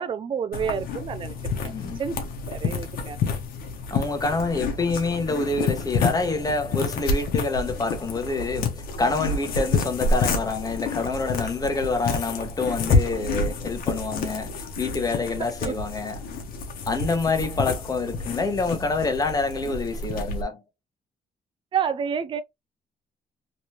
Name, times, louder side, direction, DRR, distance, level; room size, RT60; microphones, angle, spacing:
voice 1, 0.0-1.3 1.6-1.7 2.0-2.1 2.5-3.2 15.6-15.7 21.7-22.4, right 7 dB, 35° right, 0.4 m, -28 dB
sound 1, 0.5-20.4, left 4 dB, 80° left, 1.0 m, -29 dB
voice 2, 1.7-2.0 3.9-16.2 16.9-20.6, left 3 dB, 25° left, 1.1 m, -27 dB
3.2 x 3.1 x 2.9 m
cardioid pair, 115°, 15 cm